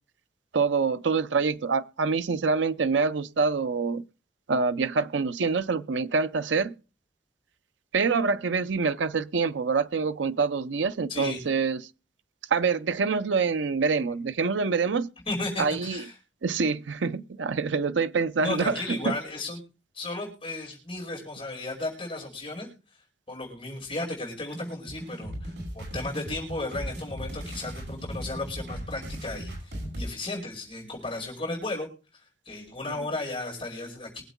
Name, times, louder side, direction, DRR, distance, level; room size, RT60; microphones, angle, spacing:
voice 1, 0.5-4.0 4.5-6.7 7.9-11.8 12.5-15.1 15.6-16.0 16.4-19.1, right 4 dB, 85° right, 0.6 m, -26 dB
voice 2, 15.2-16.1 18.4-19.6 19.9-22.7 23.3-34.2, left 2 dB, 30° left, 5.0 m, -34 dB
sound 1, 24.5-30.1, equal, 70° right, 5.8 m, -37 dB
23.5 x 8.0 x 2.2 m
head